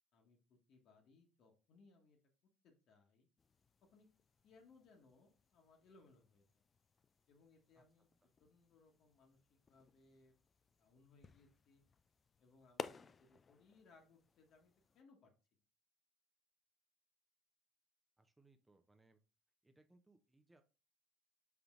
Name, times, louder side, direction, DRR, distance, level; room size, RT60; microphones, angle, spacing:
voice 1, 0.1-2.2 2.6-3.3 3.9-4.1 4.4-6.6 7.3-8.1 8.4-10.3 10.8-11.8 12.4-15.3, left 3 dB, 55° left, 2 dB, 1.0 m, -68 dB
sound 1, 3.4-15.0, left 5 dB, 30° left, 0.3 m, -57 dB
voice 2, 18.2-19.2 19.6-20.6, right 2 dB, 15° right, 6 dB, 0.6 m, -70 dB
5.6 x 3.8 x 2.4 m, 0.33 s
hypercardioid pair, 60°, 0 cm